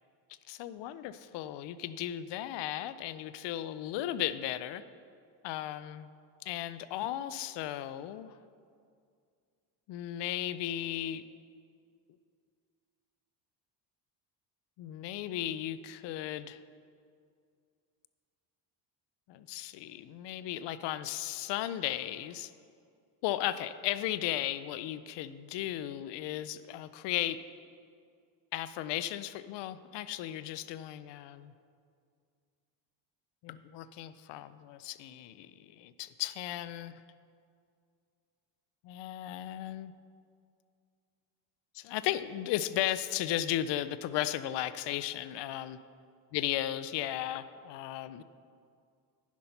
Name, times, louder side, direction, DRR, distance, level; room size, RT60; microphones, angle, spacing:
voice 1, 0.5-4.8 5.4-6.1 6.4-8.4 9.9-11.2 14.8-16.6 19.3-22.5 23.2-27.4 28.5-31.5 33.4-37.0 38.8-39.9 41.7-45.8 46.3-48.2, left 13 dB, 65° left, 14 dB, 0.6 m, -35 dB
10.5 x 5.9 x 5.5 m, 2.2 s
cardioid pair, 95°, 45 cm